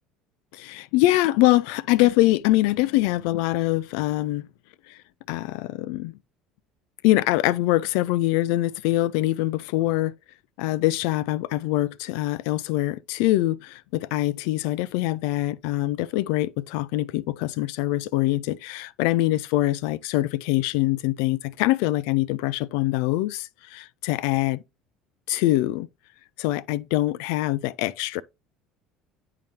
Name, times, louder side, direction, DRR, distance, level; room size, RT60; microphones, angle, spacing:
voice 1, 0.5-4.5 4.9-5.0 5.3-6.1 7.0-10.1 10.6-24.6 25.3-25.9 26.4-28.2, left 17 dB, 70° left, 0.3 m, -24 dB
9.9 x 3.8 x 2.9 m
hypercardioid pair, 70°, 0 cm